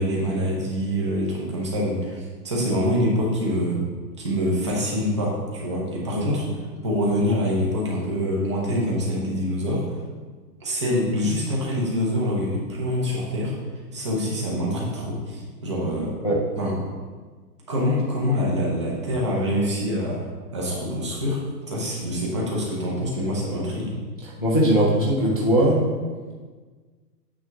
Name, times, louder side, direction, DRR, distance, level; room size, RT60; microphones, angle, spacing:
voice 1, 0.0-3.8 4.2-6.5 6.8-9.9 10.6-13.5 13.9-16.1 16.6-16.8 17.7-20.2 20.5-21.4 21.7-23.9, equal, 20° right, -4 dB, 0.8 m, -25 dB
voice 2, 24.4-25.8, right 1 dB, 25° left, -6 dB, 0.4 m, -19 dB
8.8 x 3.5 x 5.9 m, 1.4 s
hypercardioid pair, 180°, 48 cm